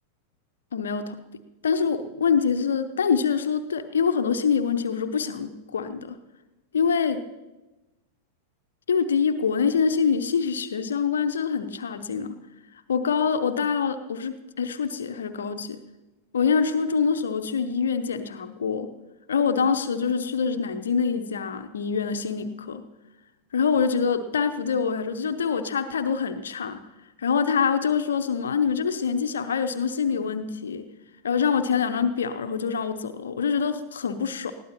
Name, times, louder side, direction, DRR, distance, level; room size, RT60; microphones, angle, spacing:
voice 1, 0.7-1.2 1.6-6.2 6.7-7.3 8.9-12.3 12.9-15.8 16.3-18.9 19.3-22.8 23.5-26.8 27.2-30.8 31.2-34.5, left 6 dB, 65° left, 9 dB, 0.8 m, -25 dB
21.0 x 15.0 x 3.0 m, 1.1 s
figure-of-eight pair, 90°, 0 cm